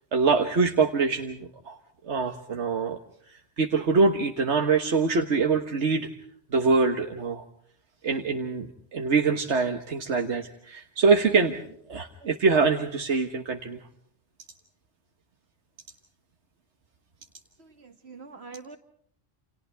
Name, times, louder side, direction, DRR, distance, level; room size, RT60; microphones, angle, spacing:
voice 1, 0.1-1.8 2.0-3.0 3.3-6.1 6.5-7.4 8.0-11.6 11.9-13.8, right 4 dB, 85° right, 4 dB, 1.7 m, -24 dB
voice 2, 17.6-18.8, right 4 dB, 70° right, 6 dB, 2.6 m, -45 dB
29.5 x 28.5 x 3.4 m, 0.64 s
omnidirectional pair, 1.1 m